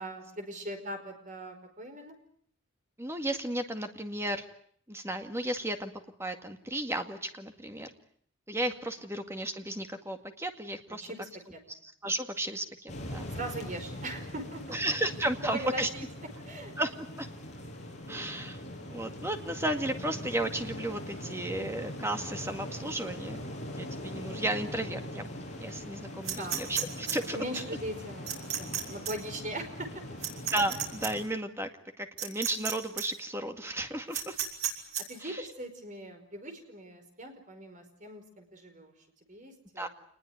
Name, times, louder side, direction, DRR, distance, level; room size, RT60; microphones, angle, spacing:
voice 1, 0.0-2.1 11.0-11.8 13.3-14.8 15.4-16.0 16.4-16.7 26.4-26.6 27.3-30.0 35.1-38.9 39.3-39.9, right 1 dB, 35° right, 6 dB, 5.1 m, -40 dB
voice 2, 3.0-4.4 4.9-5.9 6.2-7.9 8.5-11.1 11.7-13.3 14.7-15.9 16.8-17.3 18.1-18.6 18.9-23.5 23.8-25.3 25.6-27.4 30.5-31.7 32.0-34.4 35.2-35.5 39.8-39.9, right 1 dB, 10° right, 6 dB, 2.1 m, -34 dB
sound 1, 12.9-31.3, left 1 dB, 35° left, 6.9 m, -42 dB
sound 2, 26.2-27.1 28.3-28.8 29.0-29.1 30.2-31.1 32.2-32.7 33.0-33.1 34.1-35.0, right 9 dB, 90° right, 6.3 m, -32 dB
27.5 x 20.5 x 9.4 m, 0.63 s
head